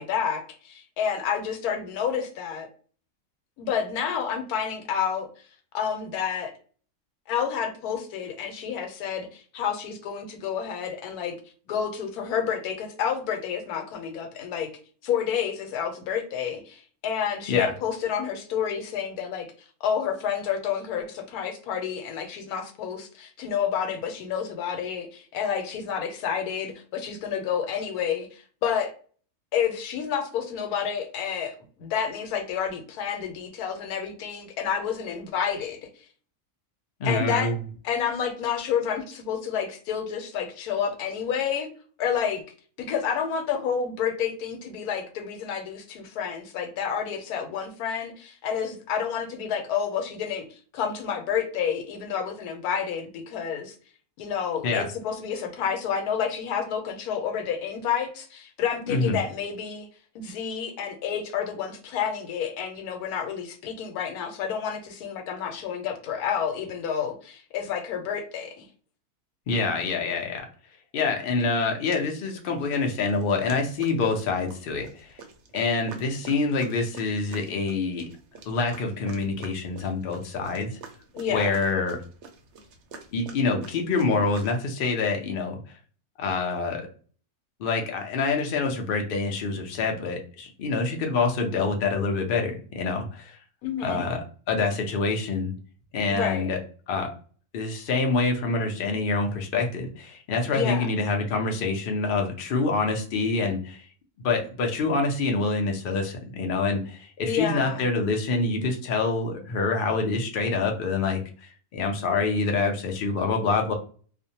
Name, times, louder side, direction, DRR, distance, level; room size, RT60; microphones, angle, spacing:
voice 1, 0.0-2.7 3.6-5.3 5.7-6.5 7.3-11.3 11.7-14.7 15.0-19.5 19.8-28.9 29.5-35.8 37.0-37.5 37.8-41.7 42.0-42.4 42.8-53.7 54.2-59.9 60.1-68.7 81.1-81.5 93.6-94.0 96.1-96.5 100.5-100.9 107.2-107.9, left 7 dB, 90° left, 5 dB, 1.1 m, -29 dB
voice 2, 37.0-37.6 54.6-54.9 58.9-59.2 69.5-70.5 70.9-75.1 75.5-78.1 78.5-80.8 81.3-82.0 83.1-85.6 86.2-86.9 87.6-93.4 93.8-94.2 94.5-95.5 95.9-96.6 96.9-97.1 97.5-103.8 104.2-113.7, left 3 dB, 65° left, 3 dB, 0.5 m, -26 dB
sound 1, 71.4-71.5 71.9-72.5 72.7-84.5, right 5 dB, 65° right, 0.7 m, -47 dB
2.5 x 2.0 x 2.7 m, 0.42 s
omnidirectional pair, 1.6 m